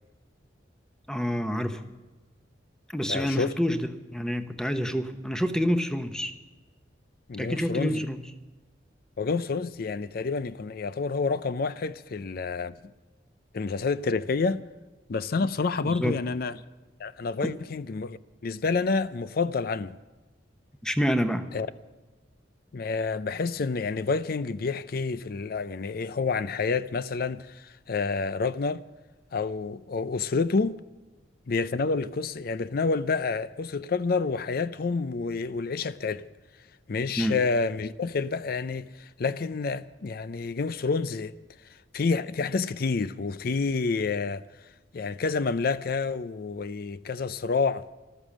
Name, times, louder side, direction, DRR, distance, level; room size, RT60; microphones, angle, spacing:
voice 1, 1.1-1.9 2.9-6.3 7.4-8.3 15.4-15.5 15.8-16.2 20.8-21.5 37.2-37.4, equal, 5° left, 0.9 m, -28 dB
voice 2, 3.1-3.5 7.3-8.0 9.2-12.8 13.5-14.6 15.1-16.6 17.0-20.0 21.5-21.7 22.7-28.8 29.3-30.7 31.5-36.2 36.9-41.4 41.9-44.4 44.9-47.8, left 4 dB, 55° left, 0.5 m, -28 dB
14.0 x 12.5 x 7.3 m
head